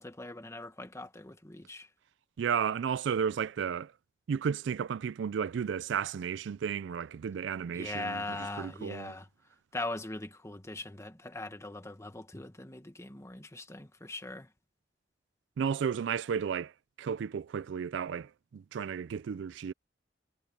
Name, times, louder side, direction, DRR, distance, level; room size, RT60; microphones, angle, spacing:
voice 1, 0.0-1.9 7.7-9.3 9.7-14.5, left 2 dB, 15° left, 1.6 m, -40 dB
voice 2, 2.4-3.9 4.3-9.1 15.6-16.7 17.0-19.7, right 7 dB, 70° right, 0.3 m, -33 dB
head